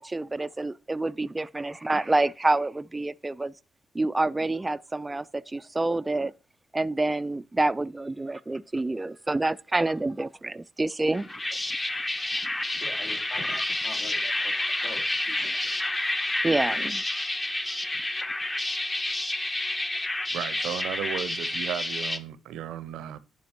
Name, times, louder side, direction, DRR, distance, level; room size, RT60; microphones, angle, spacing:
voice 1, 0.0-3.5 3.9-6.3 6.7-11.3 13.5-13.6 16.4-17.0 17.4-17.9, right 2 dB, 15° right, 0.3 m, -28 dB
sound 1, 11.1-22.2, left 1 dB, 20° left, 0.9 m, -29 dB
voice 2, 12.7-14.5 14.8-15.8, left 3 dB, 60° left, 3.0 m, -44 dB
voice 3, 20.3-23.2, right 10 dB, 85° right, 0.7 m, -35 dB
10.5 x 5.1 x 4.4 m
cardioid pair, 90°, 0 cm